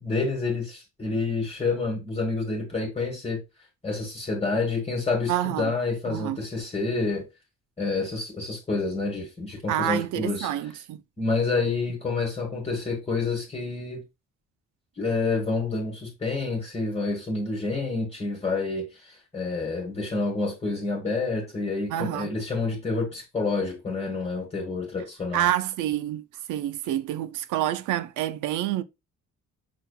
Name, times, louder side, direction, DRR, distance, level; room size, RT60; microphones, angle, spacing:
voice 1, 0.0-3.4 3.8-7.3 7.8-10.5 11.2-14.0 15.0-25.5, left 3 dB, 20° left, 1.5 m, -28 dB
voice 2, 5.3-5.7 6.1-6.4 9.7-11.0 21.9-22.3 25.3-28.8, right 12 dB, 85° right, 0.5 m, -28 dB
5.9 x 3.4 x 2.3 m
cardioid pair, 90°, 30 cm